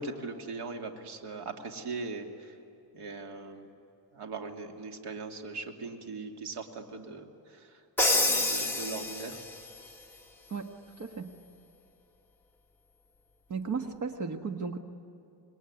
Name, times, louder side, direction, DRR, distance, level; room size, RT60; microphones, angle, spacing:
voice 1, 0.0-2.5 2.9-3.7 4.1-7.8 8.1-9.4, right 3 dB, 65° right, 3 dB, 2.7 m, -40 dB
Crash cymbal, 8.0-9.6, left 2 dB, 5° left, 2.0 m, -27 dB
voice 2, 10.5-11.3 13.5-14.8, right 5 dB, 45° right, 6 dB, 1.6 m, -35 dB
27.5 x 21.5 x 9.8 m, 2.8 s
cardioid pair, 150°, 42 cm